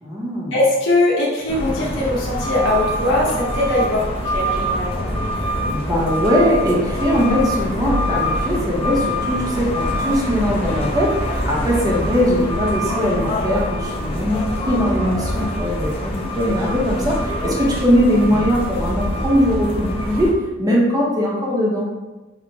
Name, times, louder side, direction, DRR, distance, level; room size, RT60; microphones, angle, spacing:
voice 1, 0.0-0.5 5.7-20.3 20.6-21.9, equal, 20° right, -4 dB, 0.7 m, -20 dB
voice 2, 0.5-4.0 4.3-5.0, left 2 dB, 65° left, -4 dB, 0.9 m, -20 dB
sound 1, 1.5-20.3, equal, 30° left, 0.6 m, -24 dB
4.3 x 2.1 x 2.7 m, 1.1 s
head